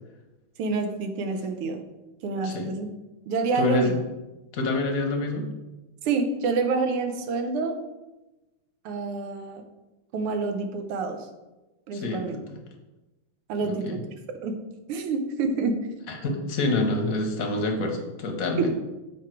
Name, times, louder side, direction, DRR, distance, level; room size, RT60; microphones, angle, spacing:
voice 1, 0.6-1.8 2.2-2.9 3.3-4.0 6.0-7.8 8.9-9.7 10.1-11.3 11.9-12.4 13.5-14.1 14.4-15.9 18.6-18.7, right 4 dB, 85° right, 6 dB, 1.8 m, -28 dB
voice 2, 3.5-4.0 4.5-5.5 11.9-12.6 13.6-14.0 16.1-18.7, left 2 dB, 55° left, 3 dB, 1.1 m, -27 dB
7.2 x 5.2 x 4.5 m, 1.1 s
omnidirectional pair, 2.4 m